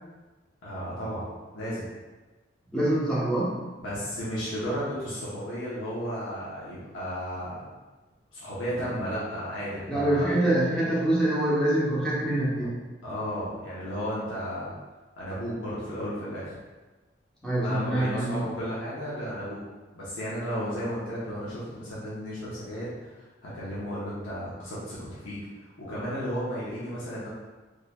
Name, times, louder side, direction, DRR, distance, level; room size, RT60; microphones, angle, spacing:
voice 1, 0.6-1.8 3.8-7.7 8.3-10.3 12.6-12.7 13.0-14.7 15.2-16.6 17.6-19.6 19.9-27.3, equal, 85° left, -9 dB, 0.9 m, -34 dB
voice 2, 2.7-3.5 9.9-12.7 17.4-18.5, right 1 dB, 5° left, -8 dB, 0.8 m, -25 dB
3.8 x 3.1 x 2.3 m, 1.2 s
head